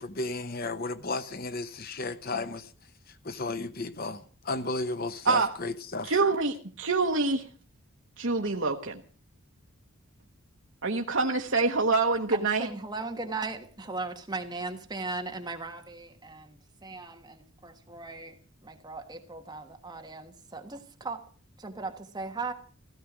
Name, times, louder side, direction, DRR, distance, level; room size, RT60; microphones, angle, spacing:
voice 1, 0.0-2.6 3.2-4.2 4.5-6.1, left 3 dB, 45° left, 0.8 m, -33 dB
voice 2, 6.0-7.4 8.2-9.0 10.8-12.7, right 3 dB, 60° right, 1.1 m, -26 dB
voice 3, 12.3-18.4 18.6-21.2 21.6-22.5, right 3 dB, 20° right, 1.5 m, -38 dB
16.0 x 14.5 x 6.1 m
head